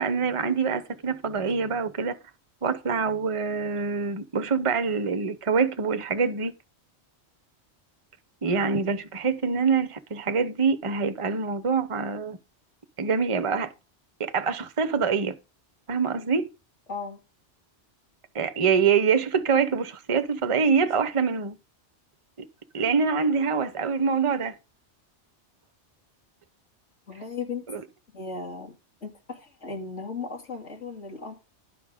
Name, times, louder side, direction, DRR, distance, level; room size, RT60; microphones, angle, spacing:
voice 1, 0.0-2.2 2.6-6.5 8.4-12.4 13.0-13.7 14.2-15.3 15.9-16.5 18.3-21.5 22.4-22.5 22.7-24.6 27.7-27.8, right 5 dB, 30° right, 0.8 m, -25 dB
voice 2, 16.9-17.2 27.1-27.7 28.1-28.7 29.0-31.3, left 4 dB, 90° left, 3.1 m, -36 dB
11.0 x 5.2 x 4.9 m
omnidirectional pair, 1.2 m